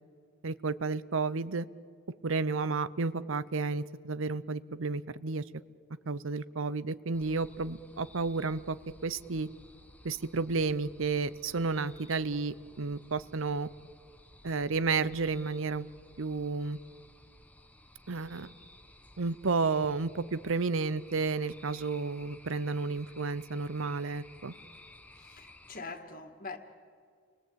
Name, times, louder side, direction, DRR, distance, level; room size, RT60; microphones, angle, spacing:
voice 1, 0.4-1.7 2.2-5.4 6.1-8.8 9.0-9.5 10.0-13.7 14.4-15.9 16.2-16.8 18.1-18.5 19.2-24.6, right 4 dB, 65° right, 16 dB, 0.7 m, -32 dB
sound 1, 7.1-25.8, left 1 dB, 5° left, 1.0 m, -56 dB
voice 2, 25.2-26.6, left 3 dB, 40° left, 7 dB, 2.0 m, -43 dB
29.5 x 22.0 x 8.7 m, 2.1 s
head